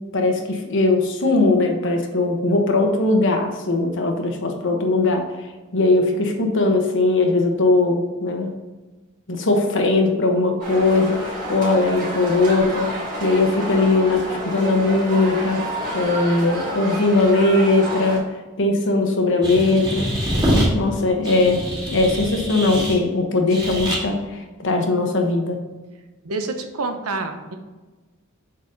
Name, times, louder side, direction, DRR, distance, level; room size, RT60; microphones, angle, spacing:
voice 1, 0.1-5.2 5.7-8.5 9.3-15.6 15.9-18.2 18.6-20.1 20.7-21.6 21.9-25.6, left 2 dB, 60° left, 3 dB, 1.1 m, -19 dB
sound 1, 10.6-18.2, right 1 dB, 40° right, 2.3 m, -29 dB
sound 2, 19.4-20.7 21.2-23.0 23.5-24.0, equal, 20° right, 2.2 m, -24 dB
voice 2, 26.2-27.6, right 3 dB, 90° right, 6 dB, 0.8 m, -27 dB
7.8 x 4.1 x 4.0 m, 1.2 s
head